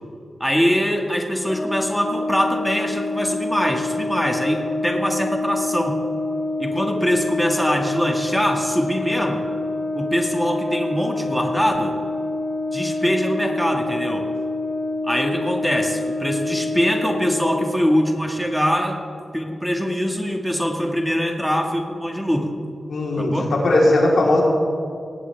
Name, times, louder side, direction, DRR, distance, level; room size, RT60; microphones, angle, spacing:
voice 1, 0.4-5.9 6.6-9.4 9.9-12.0 12.7-14.3 15.0-19.0 19.3-22.5 23.2-23.5, equal, ahead, 1 dB, 1.8 m, -23 dB
Brass instrument, 1.5-17.9, left 2 dB, 40° left, 1.1 m, -27 dB
voice 2, 22.9-24.4, left 1 dB, 80° left, -3 dB, 3.7 m, -18 dB
18.5 x 17.5 x 3.5 m, 2.4 s
cardioid pair, 75°, 0 cm